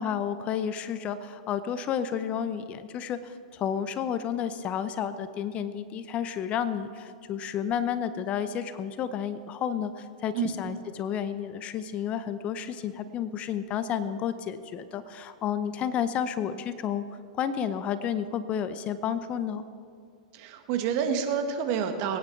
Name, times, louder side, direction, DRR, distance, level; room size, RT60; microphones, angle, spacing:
voice 1, 0.0-17.0 17.4-19.6, left 8 dB, 35° left, 13 dB, 0.7 m, -31 dB
voice 2, 20.3-22.2, right 7 dB, 50° right, 6 dB, 1.6 m, -28 dB
22.5 x 9.8 x 4.6 m, 2.2 s
hypercardioid pair, 120°, 4 cm